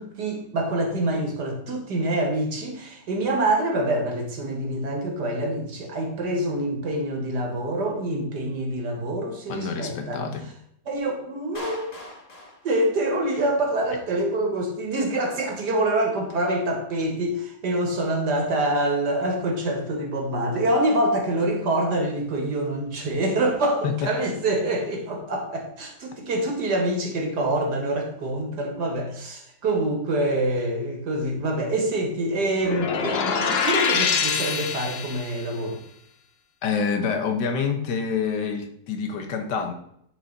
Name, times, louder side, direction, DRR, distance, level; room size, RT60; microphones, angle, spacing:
voice 1, 0.0-10.3 10.9-12.0 12.6-35.8, right 1 dB, 80° right, 2 dB, 2.3 m, -26 dB
voice 2, 9.5-10.5 23.8-24.1 36.6-39.7, left 6 dB, 85° left, 6 dB, 1.7 m, -27 dB
Clapping, 11.5-13.6, left 1 dB, 25° left, 1.6 m, -41 dB
sound 1, 32.6-35.4, left 5 dB, 50° left, 0.8 m, -25 dB
10.5 x 4.9 x 4.0 m, 0.71 s
omnidirectional pair, 1.8 m